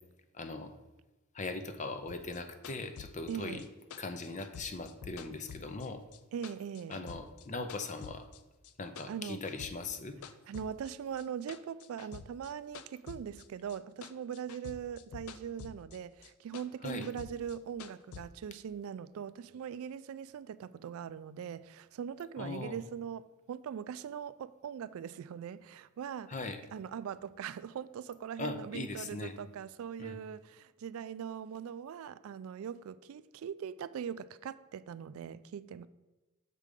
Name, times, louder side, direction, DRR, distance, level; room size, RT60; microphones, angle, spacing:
voice 1, 0.3-0.7 1.3-3.6 4.0-6.0 6.9-8.3 8.8-10.2 16.8-17.1 22.4-22.8 26.3-26.6 28.4-29.4 30.0-30.2, left 3 dB, 35° left, 0.6 m, -40 dB
sound 1, 2.1-6.2 6.4-8.4 8.6-10.0 10.2-13.8 14.0-18.2, left 6 dB, 85° left, 0.5 m, -49 dB
voice 2, 3.3-3.7 6.3-7.0 9.1-9.4 10.5-26.4 26.7-35.9, right 8 dB, 70° right, 0.3 m, -41 dB
6.7 x 4.8 x 5.1 m
head